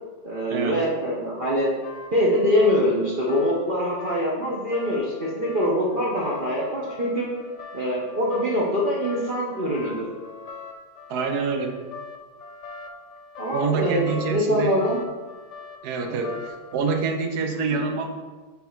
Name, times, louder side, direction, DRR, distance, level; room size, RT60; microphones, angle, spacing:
voice 1, 0.2-1.7 2.1-7.3 7.7-10.0 13.4-15.0 16.1-16.2, equal, 40° right, -5 dB, 0.8 m, -24 dB
sound 1, 1.4-16.7, left 4 dB, 65° left, 0.7 m, -42 dB
voice 2, 11.1-11.8 13.5-14.7 15.8-18.1, right 4 dB, 70° right, 4 dB, 1.2 m, -26 dB
5.4 x 3.9 x 4.5 m, 1.3 s
omnidirectional pair, 1.8 m